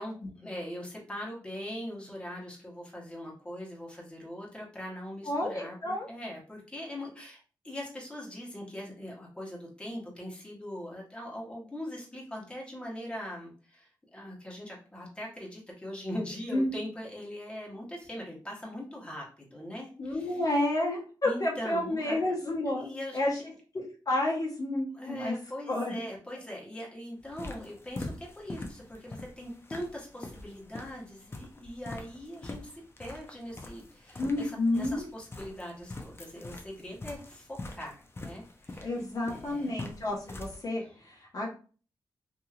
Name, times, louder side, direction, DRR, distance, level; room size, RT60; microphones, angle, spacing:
voice 1, 0.0-20.4 21.2-22.3 22.7-23.4 24.9-39.8 40.8-41.0, left 1 dB, 15° left, -3 dB, 1.1 m, -41 dB
voice 2, 5.2-6.1 16.5-16.7 20.0-22.9 23.1-23.4 23.7-25.4 25.7-26.0 34.2-35.0 38.8-41.5, left 1 dB, 50° left, -3 dB, 1.1 m, -30 dB
sound 1, 27.2-40.6, left 2 dB, 30° left, 0.6 m, -44 dB
2.9 x 2.7 x 2.4 m, 0.38 s
cardioid pair, 70°, 8 cm